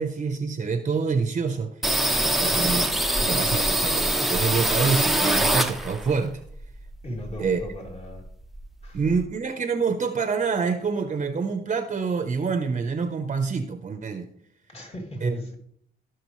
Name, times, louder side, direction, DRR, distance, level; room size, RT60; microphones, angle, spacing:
voice 1, 0.0-1.7 2.2-2.9 3.2-6.4 7.4-7.6 8.9-14.3 15.2-15.4, right 5 dB, 35° right, 8 dB, 1.0 m, -26 dB
sound 1, 1.8-6.2 6.5-7.9 8.2-8.3 8.5-9.3, right 1 dB, ahead, 1.0 m, -24 dB
voice 2, 2.4-2.8 7.0-8.2 8.8-9.0 14.7-15.6, equal, 30° left, 0 dB, 3.0 m, -37 dB
17.0 x 6.3 x 3.2 m, 0.66 s
cardioid pair, 90°, 20 cm